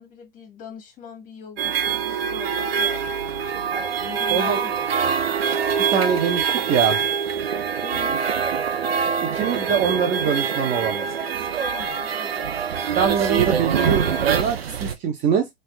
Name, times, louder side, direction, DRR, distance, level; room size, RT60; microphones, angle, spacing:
voice 1, 0.0-3.5 4.0-5.3 7.8-8.2 11.7-12.6, left 6 dB, 25° left, 1.5 m, -41 dB
sound 1, 1.6-14.9, right 7 dB, 75° right, 0.7 m, -24 dB
voice 2, 5.8-7.0 9.2-11.1 12.9-15.5, right 7 dB, 25° right, 0.5 m, -23 dB
4.3 x 2.4 x 2.2 m
figure-of-eight pair, 105°, 30 cm